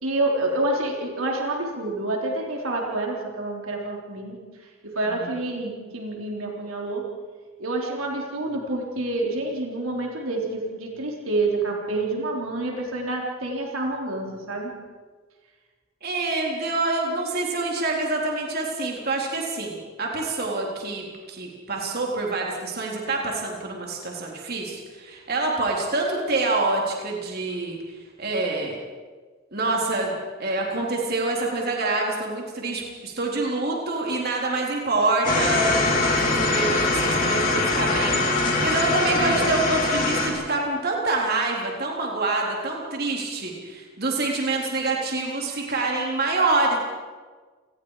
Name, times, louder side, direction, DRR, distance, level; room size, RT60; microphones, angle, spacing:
voice 1, 0.0-4.4 4.8-7.0 7.6-14.7 39.2-39.5, right 2 dB, 90° right, -1 dB, 4.2 m, -28 dB
voice 2, 16.0-27.8 28.2-28.8 29.5-46.8, right 2 dB, 50° right, -1 dB, 3.8 m, -26 dB
sound 1, 35.2-40.3, left 2 dB, 40° left, 4.5 m, -22 dB
29.5 x 20.0 x 5.0 m, 1.4 s
head